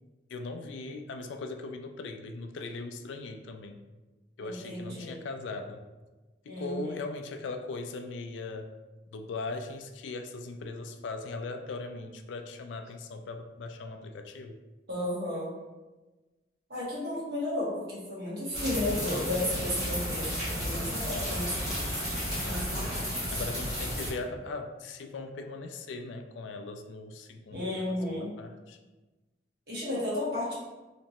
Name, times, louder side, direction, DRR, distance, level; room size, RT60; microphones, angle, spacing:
voice 1, 0.3-3.8 4.4-5.8 6.4-8.7 9.1-14.6 22.6-28.8, left 3 dB, 85° left, 6 dB, 0.3 m, -39 dB
voice 2, 4.4-5.2 6.5-7.0 14.9-15.5 16.7-20.3 20.5-21.8 22.4-22.9 23.3-23.4 27.5-28.3 29.7-30.5, left 1 dB, 55° right, -7 dB, 1.3 m, -33 dB
sound 1, 18.5-24.1, equal, 5° right, 1.4 m, -32 dB
3.3 x 2.9 x 2.8 m, 1.2 s
head